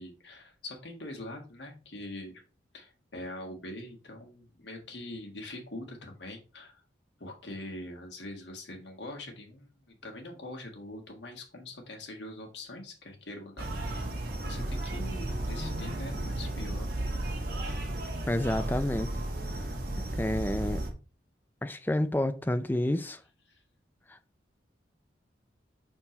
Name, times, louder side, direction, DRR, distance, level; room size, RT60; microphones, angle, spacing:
voice 1, 0.0-2.4 2.7-6.8 7.2-14.2 14.4-16.9 23.5-23.6, left 1 dB, 70° left, 1.9 m, -43 dB
sound 1, 13.6-20.9, right 1 dB, 50° right, 1.4 m, -34 dB
voice 2, 18.3-19.1 20.1-20.9 21.6-23.2 24.1-24.2, left 1 dB, 10° left, 0.4 m, -29 dB
5.5 x 4.4 x 4.4 m
head